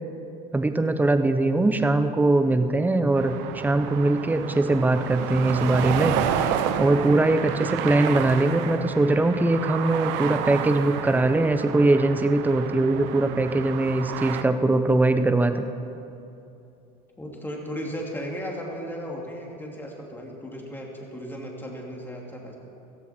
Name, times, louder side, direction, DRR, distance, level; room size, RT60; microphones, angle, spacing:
voice 1, 0.5-6.5 6.8-15.6, right 2 dB, 10° right, 9 dB, 0.8 m, -21 dB
sound 1, 3.2-14.4, right 9 dB, 65° right, 0.9 m, -30 dB
voice 2, 17.2-22.5, equal, 10° left, -1 dB, 2.6 m, -35 dB
15.0 x 15.0 x 4.4 m, 2.7 s
supercardioid pair, 120°, 20 cm